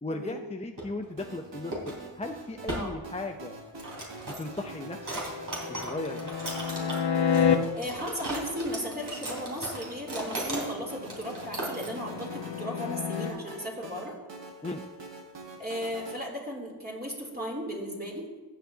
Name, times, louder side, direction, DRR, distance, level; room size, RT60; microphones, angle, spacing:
voice 1, 0.0-3.5 4.4-5.0 5.7-6.4 14.6-14.8, left 2 dB, 15° left, 4 dB, 0.6 m, -36 dB
sound 1, 0.8-1.1 1.7-1.9 2.3-2.4 2.7-2.9 3.6-4.6 5.0-7.0 7.3-10.7 11.0-11.9, right 1 dB, 40° right, 3.6 m, -36 dB
sound 2, 1.2-16.2, right 2 dB, 65° right, 1.7 m, -45 dB
sound 3, 5.3-7.6 10.9-13.3, left 7 dB, 55° left, 1.0 m, -29 dB
voice 2, 7.7-14.1 15.6-18.2, equal, 20° right, -3 dB, 3.3 m, -36 dB
15.0 x 8.0 x 2.8 m, 1.3 s
cardioid pair, 55°, 48 cm